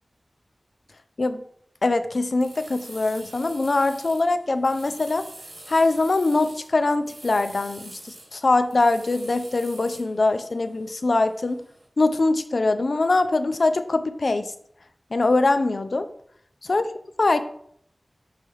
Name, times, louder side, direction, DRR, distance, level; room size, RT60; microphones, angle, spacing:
voice 1, 1.8-5.2 5.7-11.6 12.0-14.5 15.1-16.1 16.6-16.9 17.2-17.4, left 2 dB, 75° left, 10 dB, 0.4 m, -22 dB
sound 1, 2.2-11.9, right 2 dB, 70° right, 1.3 m, -46 dB
5.6 x 3.3 x 5.4 m, 0.65 s
wide cardioid pair, 40°, 0 cm